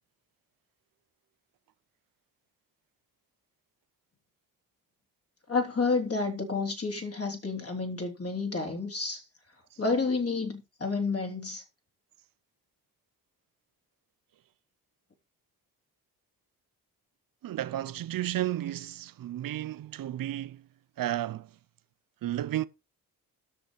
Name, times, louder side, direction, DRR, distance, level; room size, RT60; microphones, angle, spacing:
voice 1, 5.5-9.2 9.8-11.6, left 4 dB, 35° left, 3.2 m, -30 dB
voice 2, 17.4-20.6 21.0-21.5 22.2-22.7, right 13 dB, 55° right, 0.7 m, -32 dB
18.0 x 6.5 x 3.2 m
hypercardioid pair, 45°, 41 cm